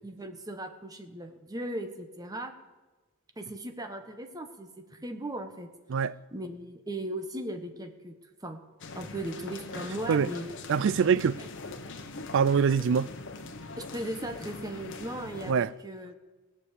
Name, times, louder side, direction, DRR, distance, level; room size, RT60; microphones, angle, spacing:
voice 1, 0.0-2.5 3.4-5.7 6.3-8.1 8.4-8.6 8.9-10.5 11.4-11.5 13.8-16.2, right 1 dB, 15° right, 1.1 m, -37 dB
sound 1, 8.8-15.5, left 3 dB, 60° left, 1.1 m, -42 dB
voice 2, 10.7-11.3 12.3-13.1 15.5-15.7, right 6 dB, 60° right, 0.4 m, -24 dB
17.0 x 7.0 x 8.3 m
head